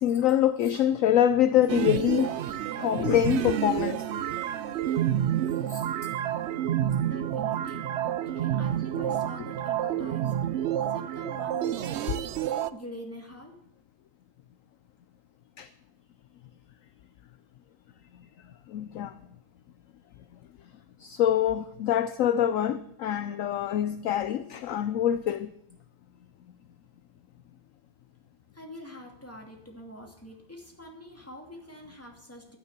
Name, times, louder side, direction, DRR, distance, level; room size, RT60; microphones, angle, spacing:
voice 1, 0.0-2.4 2.8-4.0 5.7-5.8 15.6-15.7 18.7-19.1 21.0-25.5, left 10 dB, 65° left, 0.8 m, -25 dB
sound 1, 1.7-12.7, right 11 dB, 80° right, 0.6 m, -29 dB
voice 2, 7.0-10.4 10.7-12.1 12.7-13.6 28.5-32.6, equal, 10° left, 2.6 m, -45 dB
12.0 x 9.7 x 6.8 m
omnidirectional pair, 1.8 m